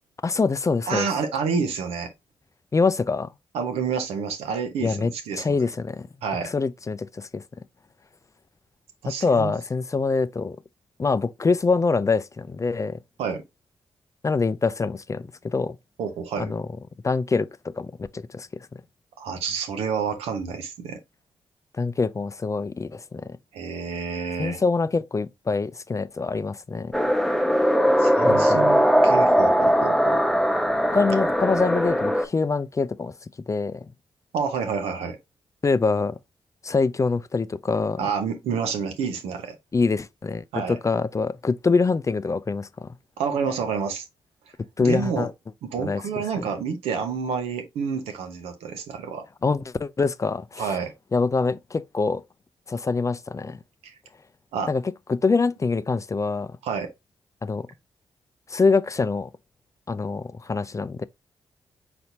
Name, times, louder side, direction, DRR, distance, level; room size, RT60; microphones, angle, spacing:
voice 1, 0.2-1.1 2.7-3.3 4.8-5.1 5.4-6.1 6.4-7.4 9.1-10.6 11.0-13.0 14.2-15.8 16.4-16.7 17.0-18.5 21.8-23.4 24.4-26.9 28.2-28.7 30.9-33.1 33.5-33.9 35.6-36.2 36.6-38.0 39.7-42.9 44.8-45.3 45.8-46.0 46.4-46.5 49.4-50.8 51.1-52.2 52.7-53.6 54.7-54.8 55.1-56.5 57.4-57.7 58.5-59.3 59.9-61.0, left 4 dB, 30° left, 0.4 m, -24 dB
voice 2, 0.9-2.1 3.5-5.7 6.2-6.5 9.0-9.5 13.2-13.4 16.0-16.5 19.2-21.0 23.5-24.6 28.0-30.2 34.3-35.2 38.0-39.6 40.5-40.8 43.2-44.1 44.8-45.3 45.6-49.2 50.6-50.9 53.8-53.9 54.5-54.7 56.6-56.9, right 6 dB, 80° right, 0.9 m, -29 dB
sound 1, 26.9-32.3, equal, ahead, 0.8 m, -20 dB
4.3 x 4.2 x 2.6 m
hypercardioid pair, 40°, 10 cm